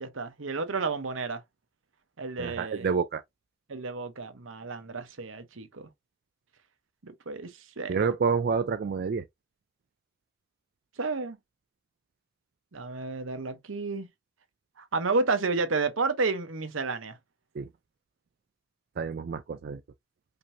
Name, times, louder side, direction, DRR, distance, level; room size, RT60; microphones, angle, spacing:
voice 1, 0.0-1.4 2.2-2.9 3.7-5.9 7.0-8.1 11.0-11.4 12.7-14.1 14.8-17.2, right 3 dB, 85° right, 0.9 m, -31 dB
voice 2, 2.4-3.2 7.9-9.2 17.6-17.7 19.0-19.8, right 5 dB, 50° right, 0.4 m, -28 dB
5.2 x 2.8 x 2.7 m
head